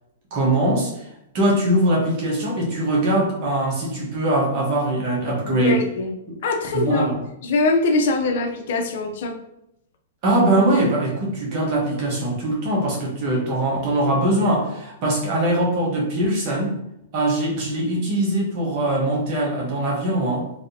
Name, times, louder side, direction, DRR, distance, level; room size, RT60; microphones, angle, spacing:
voice 1, 0.3-5.8 6.3-6.4 6.7-7.2 10.2-16.8 17.1-20.5, right 1 dB, 40° right, -3 dB, 1.0 m, -22 dB
voice 2, 5.5-6.1 6.4-7.1 7.4-9.4, left 3 dB, 60° left, 4 dB, 0.6 m, -22 dB
3.2 x 2.7 x 2.7 m, 0.80 s
hypercardioid pair, 145°, 0 cm